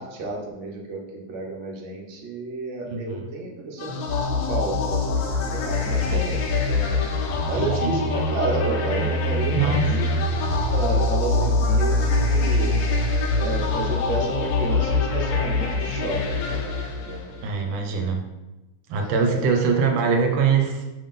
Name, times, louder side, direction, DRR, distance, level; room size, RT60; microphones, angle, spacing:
voice 1, 0.0-7.0 7.4-10.1 10.7-12.8 13.3-18.0 18.9-19.5, right 2 dB, 50° right, -1 dB, 0.9 m, -31 dB
voice 2, 2.9-3.2 5.9-6.2 7.6-8.0 9.5-9.9 17.4-18.2 18.9-20.8, right 5 dB, 80° right, 3 dB, 1.4 m, -23 dB
sound 1, 3.8-17.5, left 2 dB, 80° left, 1.4 m, -24 dB
5.4 x 3.7 x 2.5 m, 1.0 s
omnidirectional pair, 2.2 m